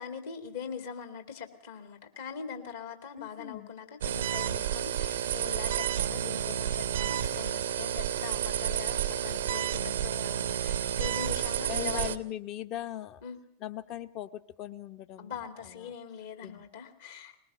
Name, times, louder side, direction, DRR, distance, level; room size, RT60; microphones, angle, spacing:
voice 1, 0.0-12.1 13.2-13.4 15.2-17.3, left 7 dB, 60° left, 7 dB, 2.3 m, -42 dB
voice 2, 3.1-3.7 11.7-13.2 13.6-15.9 16.4-16.6, left 12 dB, 40° left, 10 dB, 0.9 m, -40 dB
sound 1, 4.0-12.2, right 10 dB, 65° right, 0.8 m, -30 dB
20.5 x 19.5 x 6.7 m, 0.66 s
figure-of-eight pair, 90°, 0 cm